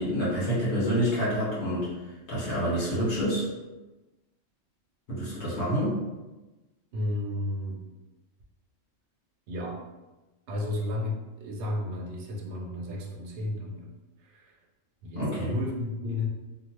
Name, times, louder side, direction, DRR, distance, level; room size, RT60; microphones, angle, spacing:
voice 1, 0.0-1.9 2.3-3.4 5.1-5.9 15.1-15.5, equal, 60° left, -9 dB, 1.5 m, -27 dB
voice 2, 6.9-7.8 9.5-9.8 10.5-13.9 14.2-14.5 15.0-16.3, left 2 dB, 65° right, 0 dB, 0.9 m, -33 dB
3.0 x 2.4 x 2.9 m, 1.1 s
omnidirectional pair, 1.3 m